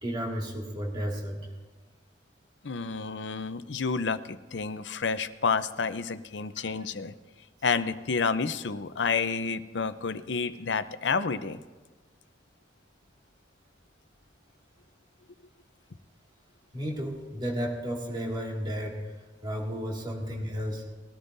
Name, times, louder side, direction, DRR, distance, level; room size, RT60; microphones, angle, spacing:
voice 1, 0.0-1.4 6.6-6.7 16.7-19.1 19.4-20.9, equal, 25° right, -2 dB, 2.3 m, -33 dB
voice 2, 2.6-7.1 7.6-11.6, left 5 dB, 90° left, 12 dB, 0.7 m, -30 dB
21.0 x 13.5 x 2.7 m, 1.3 s
head